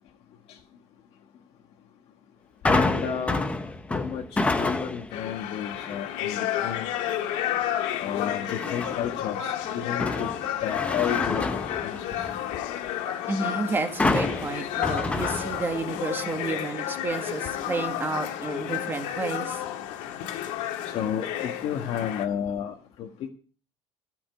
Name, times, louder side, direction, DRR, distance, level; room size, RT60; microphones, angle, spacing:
voice 1, 2.6-3.5 3.9-4.2 4.6-6.9 8.0-10.3 10.6-11.5 11.8-12.3 20.8-23.1, left 9 dB, 55° left, 1.6 m, -32 dB
sound 1, 2.6-5.2 5.6-6.0 8.5-9.2 9.6-12.5 14.0-15.9 16.3-16.4, left 2 dB, 10° left, 1.0 m, -28 dB
sound 2, 5.1-22.3, left 11 dB, 85° left, 2.0 m, -31 dB
voice 2, 13.3-19.6, right 3 dB, 20° right, 2.0 m, -31 dB
14.0 x 7.1 x 7.9 m
cardioid pair, 155°, 12 cm